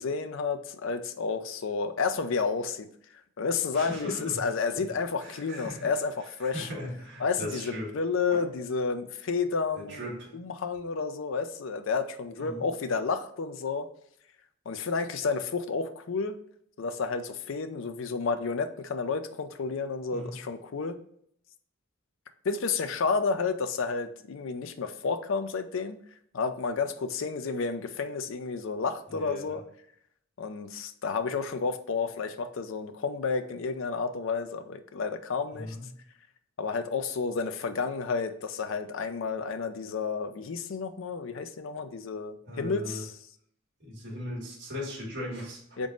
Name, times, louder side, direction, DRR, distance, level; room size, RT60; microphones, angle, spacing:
voice 1, 0.0-2.9 3.4-6.7 7.2-13.9 14.7-16.4 16.8-21.0 22.4-26.0 26.3-29.6 30.4-35.8 36.6-43.2 45.8-45.9, left 4 dB, 65° left, 9 dB, 0.5 m, -31 dB
voice 2, 3.7-4.4 5.2-5.9 6.5-7.9 8.3-8.4 9.8-10.3 12.4-12.7 20.1-20.4 29.1-29.6 35.5-35.9 42.5-43.0 43.8-45.6, left 1 dB, 60° right, -3 dB, 1.6 m, -38 dB
3.7 x 3.7 x 3.8 m, 0.68 s
head